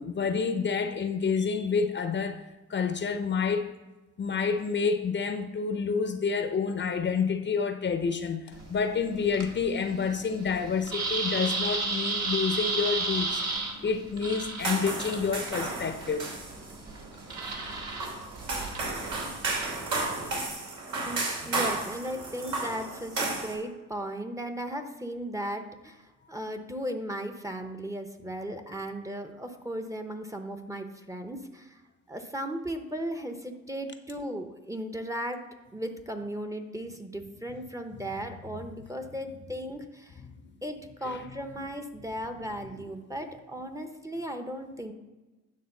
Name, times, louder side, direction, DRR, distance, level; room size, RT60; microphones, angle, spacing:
voice 1, 0.0-2.4 2.7-3.7 4.2-13.4 13.8-16.3 22.4-22.6 37.9-38.2 38.6-38.7 39.3-39.4 40.2-40.3 40.6-40.7 41.0-41.3 42.6-42.8, left 5 dB, 40° left, 7 dB, 0.7 m, -29 dB
sound 1, 8.5-20.5, right 3 dB, 60° right, 1.8 m, -34 dB
sound 2, 14.6-23.5, right 3 dB, 80° right, 3.1 m, -33 dB
voice 2, 21.1-31.8 32.1-35.4 35.7-40.2 40.6-44.9, equal, 10° right, 6 dB, 0.8 m, -36 dB
9.4 x 3.6 x 6.6 m, 1.1 s
cardioid pair, 90°, 30 cm